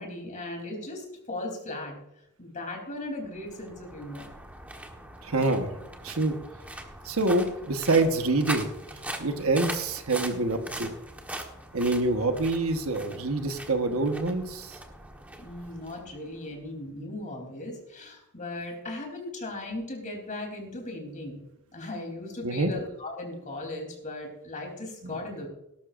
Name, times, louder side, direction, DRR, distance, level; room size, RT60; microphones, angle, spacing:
voice 1, 0.0-2.0 2.4-4.3 15.4-21.4 21.7-25.5, left 2 dB, 35° left, 2 dB, 3.5 m, -37 dB
sound 1, 3.2-16.6, right 1 dB, 5° right, 1.3 m, -41 dB
voice 2, 5.2-5.7 6.0-6.4 7.0-8.7 9.2-10.9 11.7-14.7 22.4-22.7 25.0-25.1, right 2 dB, 75° right, 6 dB, 1.3 m, -26 dB
19.0 x 12.0 x 2.6 m, 0.84 s
head